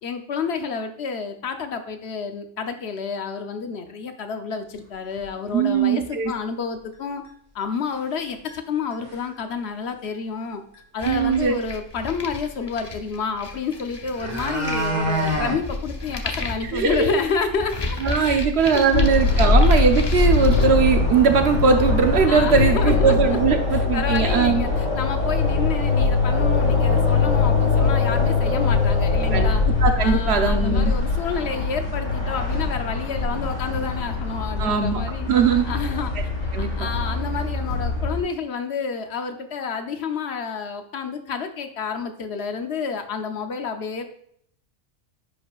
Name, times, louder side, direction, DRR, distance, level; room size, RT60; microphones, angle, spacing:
voice 1, 0.0-7.2 7.5-10.6 10.9-18.5 18.7-19.1 19.3-19.5 22.3-23.4 23.7-29.6 30.0-35.3 35.7-36.1 36.6-44.1, left 5 dB, 60° left, 7 dB, 0.9 m, -29 dB
sound 1, 5.2-5.3 5.8-5.9 6.2-6.3 7.2-7.3 7.9-8.2 8.5-8.6 8.9-9.3 10.7-10.8 11.1-11.2 13.5-13.6 13.9-15.6 16.0-16.1 16.4-16.5 16.9-17.0 17.4-17.5 20.3-20.4 20.7-20.8 21.6-21.7 22.1-22.4 22.6-23.4 23.7-23.8, right 1 dB, 15° right, 1.3 m, -28 dB
voice 2, 5.5-6.3 11.0-11.6 16.7-17.2 18.0-24.6 29.3-29.5 29.8-30.9 34.6-35.0 35.3-35.7 36.5-36.9, right 5 dB, 60° right, 6 dB, 1.0 m, -20 dB
sound 2, 11.0-20.7, left 2 dB, 30° left, 0.5 m, -32 dB
sound 3, 18.9-38.2, left 4 dB, 85° left, 2.8 m, -22 dB
10.0 x 5.3 x 2.4 m, 0.66 s
omnidirectional pair, 1.3 m